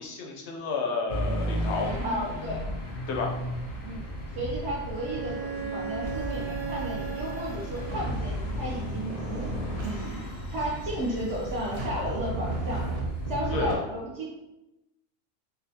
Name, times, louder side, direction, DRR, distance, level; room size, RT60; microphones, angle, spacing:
voice 1, 0.0-1.9 3.1-3.3 13.5-13.8, left 4 dB, 65° left, 1 dB, 0.8 m, -31 dB
sound 1, 1.1-13.6, equal, 90° left, 1.1 m, -36 dB
voice 2, 1.8-2.6 3.8-4.0 4.3-9.5 9.8-12.8 13.3-14.3, right 1 dB, 65° right, -6 dB, 0.9 m, -33 dB
Bowed string instrument, 4.9-8.4, right 6 dB, 90° right, 1.1 m, -37 dB
sound 2, 6.0-13.7, right 1 dB, 40° right, 0.5 m, -35 dB
3.8 x 2.0 x 2.7 m, 0.93 s
omnidirectional pair, 1.3 m